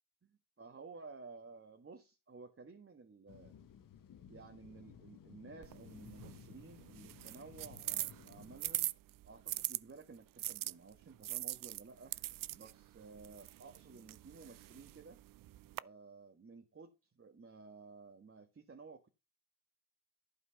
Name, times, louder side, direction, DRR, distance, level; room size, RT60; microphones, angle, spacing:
voice 1, 0.2-3.5 4.3-8.9 9.2-12.1 12.5-15.2 15.8-19.1, right 4 dB, 40° right, 1.7 m, -54 dB
sound 1, 3.3-8.6, left 8 dB, 80° left, 1.4 m, -57 dB
sound 2, 5.6-9.8 10.4-15.8, right 15 dB, 80° right, 0.5 m, -42 dB
12.0 x 5.0 x 5.8 m
supercardioid pair, 50°, 33 cm